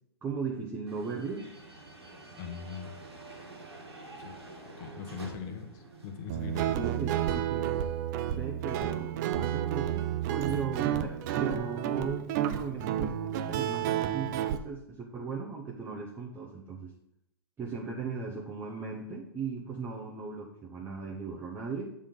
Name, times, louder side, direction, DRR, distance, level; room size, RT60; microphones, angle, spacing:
voice 1, 0.2-1.5 6.7-7.8 8.3-16.9 17.6-21.9, right 5 dB, 15° right, -2 dB, 0.9 m, -37 dB
sound 1, 0.9-7.9, right 2 dB, 90° right, 1.6 m, -49 dB
voice 2, 2.4-3.0 4.2-4.4 4.8-6.8, left 6 dB, 40° left, 5 dB, 1.1 m, -41 dB
Guitar, 6.3-14.6, right 11 dB, 45° right, 0.5 m, -31 dB
7.3 x 3.7 x 5.8 m, 0.80 s
hypercardioid pair, 115°, 13 cm